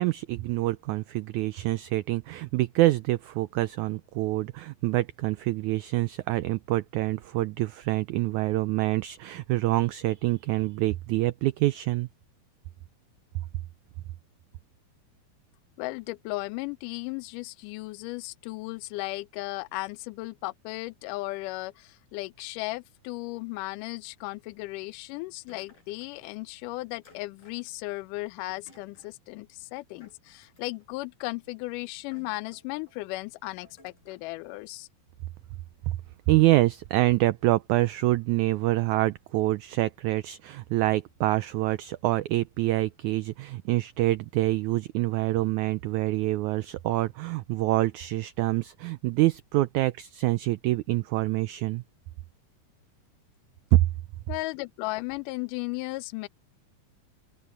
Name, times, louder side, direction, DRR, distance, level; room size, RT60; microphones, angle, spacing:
voice 1, 0.0-12.1 35.9-36.0 36.3-51.8 53.7-53.9, right 17 dB, 85° right, 1.7 m, -26 dB
voice 2, 15.8-34.9 54.3-56.3, left 21 dB, 80° left, 2.0 m, -36 dB
sound 1, 25.5-26.3 27.0-28.0 28.5-29.2 30.0-30.9 31.6-31.7 32.1-32.9 33.6-34.3, left 2 dB, 60° left, 8.6 m, -58 dB
open air
omnidirectional pair, 4.0 m